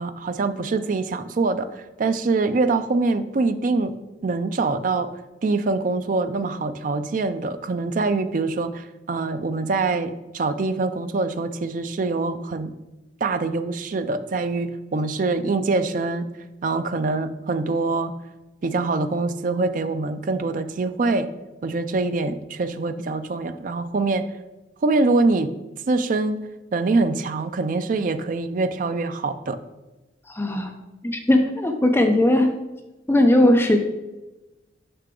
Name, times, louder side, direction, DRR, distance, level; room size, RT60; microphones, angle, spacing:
voice 1, 0.0-3.9 4.2-5.1 5.4-12.8 13.2-16.3 16.6-18.1 18.6-21.3 21.6-24.3 24.8-25.5 25.9-26.4 26.7-29.6, right 3 dB, 45° right, 10 dB, 0.4 m, -24 dB
voice 2, 30.3-30.7 31.0-32.5 33.1-33.8, left 1 dB, 15° left, 4 dB, 0.5 m, -18 dB
6.7 x 5.7 x 3.7 m, 1.1 s
head